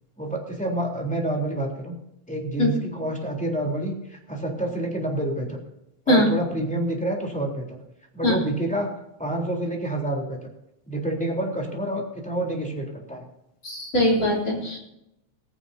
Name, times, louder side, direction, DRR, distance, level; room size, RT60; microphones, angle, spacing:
voice 1, 0.2-2.0 2.3-5.6 6.1-7.8 8.1-8.9 9.2-10.4 10.9-13.2, right 1 dB, 5° left, -1 dB, 3.2 m, -28 dB
voice 2, 13.6-14.8, left 1 dB, 30° left, -2 dB, 4.1 m, -21 dB
18.0 x 16.0 x 2.7 m, 0.85 s
omnidirectional pair, 3.3 m